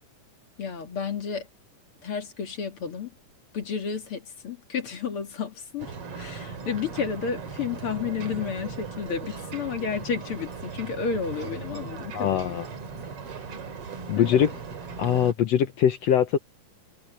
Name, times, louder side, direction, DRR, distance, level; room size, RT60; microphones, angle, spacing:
voice 1, 0.6-1.5 2.0-3.1 3.5-12.6 14.2-14.3, left 6 dB, 45° left, 2.5 m, -31 dB
Ocean, 5.8-15.3, right 5 dB, 45° right, 3.1 m, -38 dB
voice 2, 12.1-12.6 14.1-14.5 15.0-16.4, left 9 dB, 70° left, 1.7 m, -22 dB
omnidirectional pair, 3.8 m